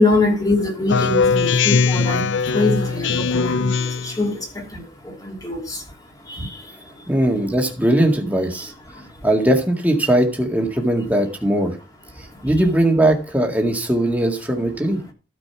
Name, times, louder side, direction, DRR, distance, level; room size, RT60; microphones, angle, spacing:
voice 1, 0.0-7.1 8.9-9.3 12.1-12.5, left 2 dB, 20° left, 2.9 m, -24 dB
Speech synthesizer, 0.9-4.2, left 5 dB, 65° left, 0.6 m, -20 dB
voice 2, 7.1-8.7 9.2-11.7 12.4-15.0, right 1 dB, 10° right, 2.0 m, -19 dB
13.0 x 5.3 x 5.9 m
head